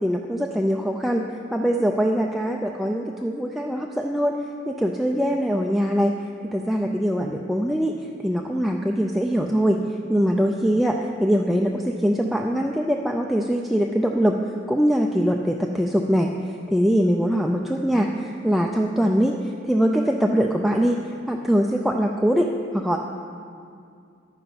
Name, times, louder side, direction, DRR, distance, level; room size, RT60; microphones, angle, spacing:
voice 1, 0.0-4.4 4.7-6.2 6.5-8.0 8.2-9.8 10.1-14.4 14.7-16.3 16.7-21.0 21.3-23.0, equal, ahead, 1 dB, 0.4 m, -22 dB
9.9 x 9.4 x 5.5 m, 2.3 s
head